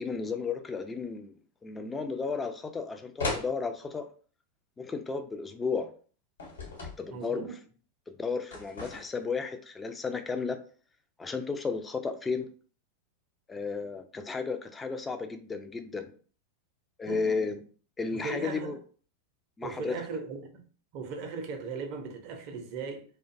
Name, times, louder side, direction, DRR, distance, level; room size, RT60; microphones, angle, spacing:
voice 1, 0.0-1.3 1.6-4.1 4.8-5.9 7.0-7.5 8.1-10.6 11.2-12.5 13.5-16.1 17.0-17.6 18.0-18.8 19.6-20.0, left 4 dB, 15° left, 0.3 m, -33 dB
sound 1, 3.2-3.5 6.4-7.0 8.5-9.3, left 3 dB, 70° left, 1.0 m, -35 dB
voice 2, 7.1-7.6 17.1-17.4 18.1-18.8 19.6-20.6 20.9-23.0, right 4 dB, 45° right, 0.5 m, -38 dB
2.5 x 2.2 x 2.5 m
figure-of-eight pair, 90°, 0 cm